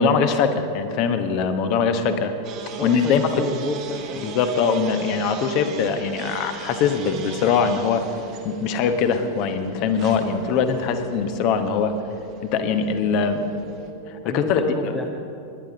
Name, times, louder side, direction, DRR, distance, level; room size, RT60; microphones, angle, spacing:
voice 1, 0.0-2.3 2.8-3.4 4.2-8.0 8.4-11.9 12.5-13.5 14.1-14.6, left 6 dB, 40° left, 8 dB, 1.1 m, -22 dB
sound 1, 0.6-14.5, right 4 dB, 80° right, 1.3 m, -42 dB
sound 2, 2.4-13.9, right 6 dB, 40° right, 1.3 m, -40 dB
voice 2, 2.8-4.2 14.2-15.1, left 2 dB, 15° left, 2 dB, 0.8 m, -29 dB
20.0 x 10.5 x 3.9 m, 2.7 s
figure-of-eight pair, 90°, 0 cm